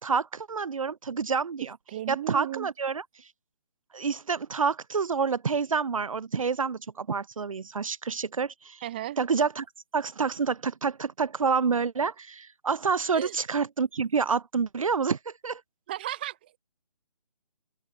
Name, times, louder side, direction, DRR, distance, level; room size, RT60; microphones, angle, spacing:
voice 1, 0.0-1.7 2.1-3.0 3.9-8.8 9.2-9.7 9.9-15.6, right 5 dB, 60° right, 0.6 m, -28 dB
voice 2, 1.9-2.7 8.8-9.2 13.1-13.4 15.9-16.5, right 13 dB, 15° right, 0.5 m, -35 dB
open air
figure-of-eight pair, 145°, 20 cm